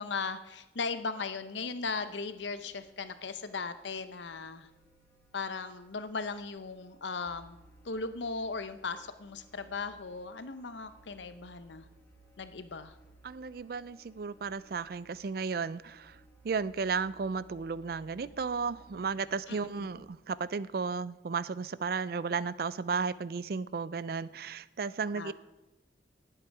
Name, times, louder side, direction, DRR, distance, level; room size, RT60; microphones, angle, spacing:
voice 1, 0.0-4.7 5.3-7.6 7.8-11.9 12.4-12.9 19.5-19.7 25.1-25.3, left 4 dB, 80° left, 11 dB, 0.8 m, -37 dB
sound 1, 1.9-20.0, right 2 dB, 10° left, 2.0 m, -61 dB
voice 2, 13.2-16.2 16.4-25.3, right 5 dB, 55° right, 18 dB, 0.4 m, -34 dB
18.0 x 7.8 x 4.7 m, 1.1 s
head